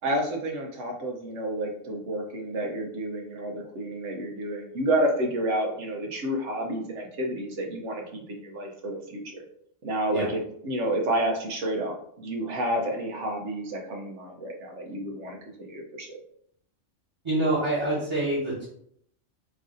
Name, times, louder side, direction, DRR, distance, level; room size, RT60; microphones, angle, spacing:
voice 1, 0.0-9.4 9.8-16.2, right 1 dB, 70° right, 1 dB, 1.0 m, -30 dB
voice 2, 17.2-18.7, right 1 dB, 25° right, -9 dB, 1.0 m, -26 dB
3.2 x 2.5 x 3.7 m, 0.68 s
omnidirectional pair, 1.3 m